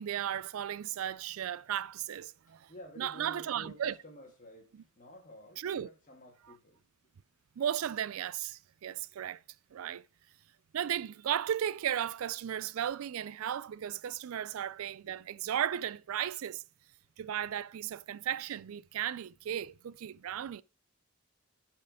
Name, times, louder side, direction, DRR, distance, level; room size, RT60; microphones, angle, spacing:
voice 1, 0.0-2.7 3.0-3.9 5.6-5.9 7.6-9.4 9.7-10.0 10.7-16.6 17.2-20.6, right 10 dB, 80° right, 0.4 m, -35 dB
voice 2, 2.5-6.8, equal, 40° left, 1.9 m, -51 dB
8.6 x 4.5 x 4.8 m
head